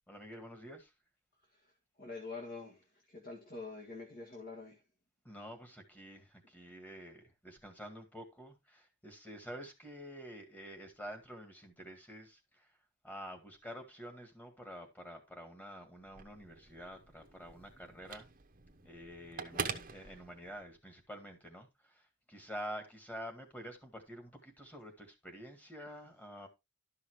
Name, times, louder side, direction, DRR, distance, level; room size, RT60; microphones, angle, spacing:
voice 1, 0.1-0.9 5.2-12.7 13.0-18.3 18.8-26.5, equal, 10° left, 2.0 m, -48 dB
voice 2, 2.0-4.8 19.5-19.8, left 3 dB, 45° left, 1.8 m, -46 dB
Telephone, 16.0-20.8, right 5 dB, 40° right, 1.0 m, -45 dB
12.0 x 5.7 x 3.2 m
head